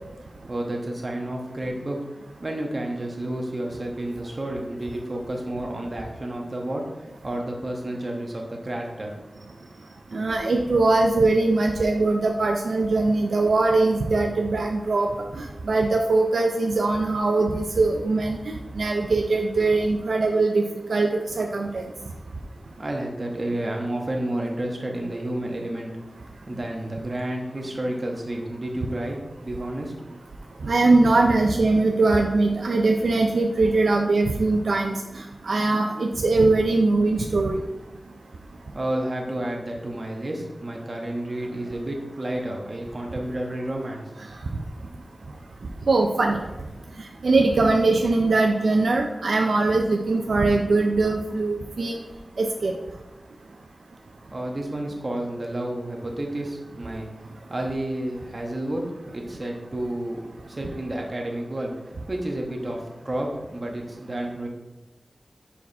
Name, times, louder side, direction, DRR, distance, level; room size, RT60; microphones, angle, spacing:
voice 1, 0.5-2.0 2.4-9.3 22.5-25.9 26.5-30.1 38.7-44.1 54.3-57.1 57.5-58.8 59.1-61.7 62.1-64.5, right 1 dB, 45° right, 0 dB, 1.2 m, -30 dB
voice 2, 10.1-15.1 15.3-20.6 20.9-21.8 30.6-37.6 45.9-46.4 47.2-52.0 52.4-52.7, right 3 dB, 85° right, 2 dB, 0.5 m, -21 dB
5.7 x 4.7 x 3.5 m, 1.1 s
wide cardioid pair, 55°, 0 cm